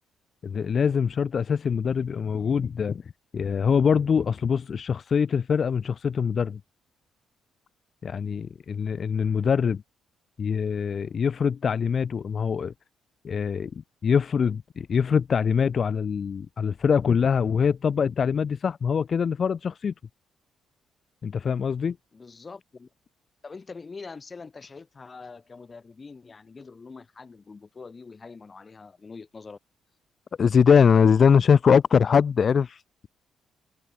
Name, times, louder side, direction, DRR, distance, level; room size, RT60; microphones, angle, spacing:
voice 1, 0.4-6.6 8.0-9.8 10.4-12.7 13.2-19.9 21.2-22.0 30.4-33.1, left 6 dB, 45° left, 0.3 m, -23 dB
voice 2, 22.1-22.9 23.4-29.6, left 4 dB, 30° left, 1.3 m, -44 dB
cardioid pair, 90°, 0 cm